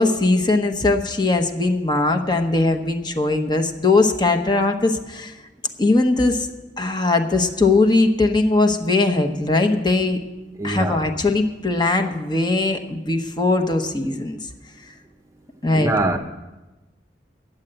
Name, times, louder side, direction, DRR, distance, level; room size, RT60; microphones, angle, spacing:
voice 1, 0.0-5.3 5.8-6.5 6.8-10.2 10.6-14.4 15.6-15.9, left 2 dB, 25° left, 5 dB, 0.9 m, -20 dB
voice 2, 10.6-11.1 15.7-16.2, right 2 dB, 20° right, 4 dB, 0.7 m, -22 dB
10.5 x 7.8 x 8.7 m, 1.1 s
head